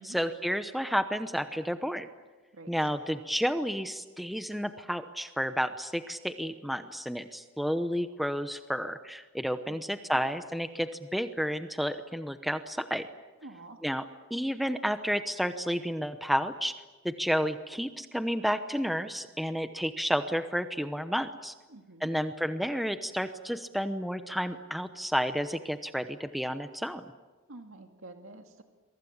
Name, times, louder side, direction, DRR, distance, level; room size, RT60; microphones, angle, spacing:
voice 1, 0.0-2.1 2.7-13.1 13.8-14.0 14.3-16.7 17.0-21.5 22.0-27.0, equal, ahead, 8 dB, 0.9 m, -31 dB
voice 2, 9.7-10.2 13.4-13.8 21.7-22.1 27.5-28.6, right 2 dB, 75° right, 4 dB, 2.1 m, -48 dB
28.0 x 23.5 x 7.3 m, 1.3 s
head